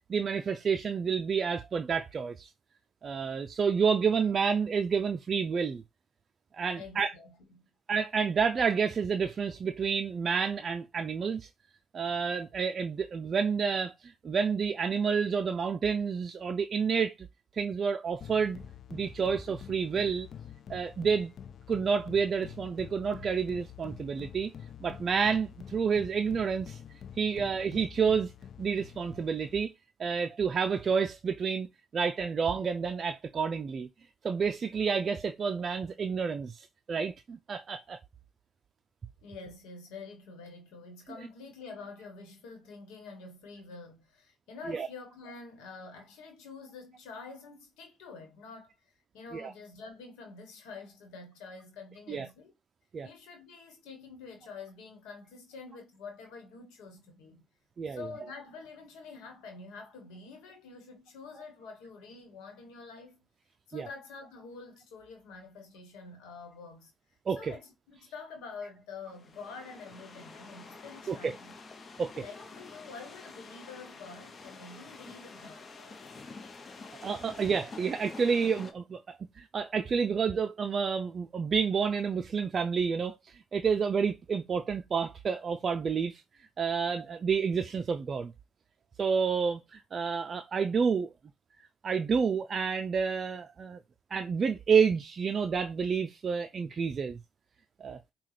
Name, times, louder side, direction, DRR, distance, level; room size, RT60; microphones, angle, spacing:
voice 1, 0.0-2.5 3.0-5.8 6.5-7.1 7.9-11.5 11.9-17.3 17.5-18.6 18.9-20.3 20.7-21.3 21.7-24.5 24.8-26.8 27.2-28.3 28.6-29.7 30.0-31.7 31.9-33.9 34.2-38.0 44.7-44.9 49.3-49.5 52.1-52.3 52.9-53.1 57.8-58.0 63.7-63.9 67.3-67.5 71.1-71.3 72.0-72.2 77.0-86.2 86.6-88.3 89.0-91.1 91.8-93.8 94.1-97.2 97.8-98.0, right 6 dB, 50° right, 0.3 m, -29 dB
voice 2, 6.7-7.7 39.2-52.5 53.0-57.4 57.9-63.2 63.7-66.9 67.4-71.5 72.2-75.6, left 4 dB, 85° left, 1.1 m, -47 dB
sound 1, 18.2-29.7, left 9 dB, 60° left, 0.4 m, -47 dB
sound 2, 69.0-78.7, left 3 dB, 45° left, 0.8 m, -48 dB
5.5 x 2.3 x 3.2 m
supercardioid pair, 55°, 0 cm